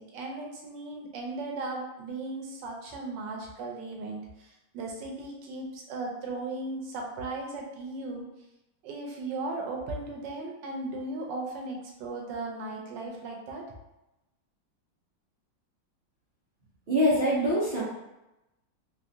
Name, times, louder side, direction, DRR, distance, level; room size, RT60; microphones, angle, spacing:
voice 1, 0.0-4.5 4.7-8.3 8.8-13.6, right 2 dB, 80° right, 0 dB, 1.3 m, -36 dB
voice 2, 16.9-17.8, equal, 50° right, -9 dB, 0.6 m, -24 dB
3.2 x 2.4 x 2.7 m, 0.93 s
omnidirectional pair, 2.0 m